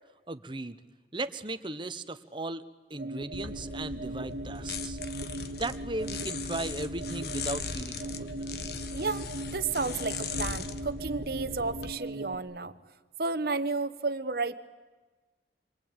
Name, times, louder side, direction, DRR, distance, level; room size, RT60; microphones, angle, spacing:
voice 1, 0.3-0.8 1.1-2.6 2.9-5.0 5.6-8.7, right 2 dB, 25° right, 11 dB, 1.1 m, -37 dB
sound 1, 2.9-12.3, right 1 dB, 70° right, 1.9 m, -39 dB
sound 2, 3.3-11.9, left 5 dB, 60° left, 1.3 m, -39 dB
voice 2, 8.9-9.3 9.5-12.7 13.2-14.5, right 3 dB, 55° right, 12 dB, 1.2 m, -32 dB
27.0 x 23.5 x 9.0 m, 1.3 s
head